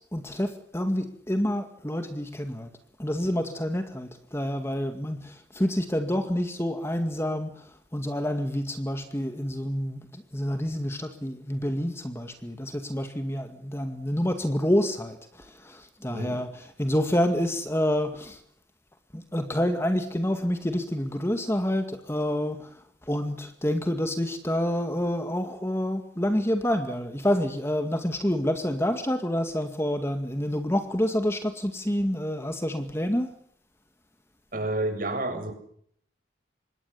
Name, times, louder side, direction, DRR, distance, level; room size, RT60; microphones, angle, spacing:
voice 1, 0.0-2.7 3.0-18.4 19.1-33.3, equal, 15° left, 7 dB, 2.1 m, -28 dB
voice 2, 34.5-35.5, right 2 dB, 45° right, 6 dB, 7.6 m, -29 dB
26.5 x 21.5 x 7.2 m, 0.65 s
head